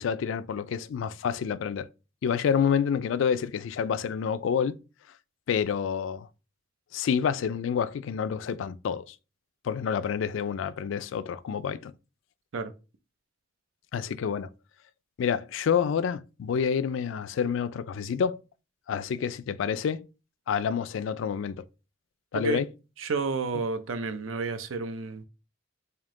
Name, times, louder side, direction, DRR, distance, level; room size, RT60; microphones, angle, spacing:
voice 1, 0.0-1.9 2.2-4.8 5.5-6.3 6.9-9.2 9.6-11.9 13.9-14.5 15.2-18.4 18.9-20.0 20.5-21.6 22.3-22.7, left 7 dB, 70° left, 0.3 m, -28 dB
voice 2, 23.0-25.2, right 4 dB, 80° right, 0.5 m, -30 dB
3.5 x 2.8 x 3.7 m
head